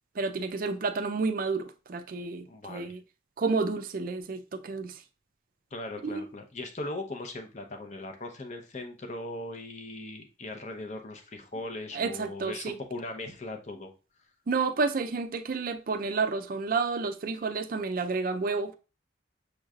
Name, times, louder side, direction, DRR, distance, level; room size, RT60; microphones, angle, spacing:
voice 1, 0.2-3.0 3.4-5.0 6.0-6.2 11.9-12.8 14.5-18.7, right 4 dB, 45° right, 0.4 m, -30 dB
voice 2, 2.5-2.9 5.7-13.9, left 2 dB, 35° left, 0.7 m, -39 dB
6.4 x 3.1 x 2.3 m
head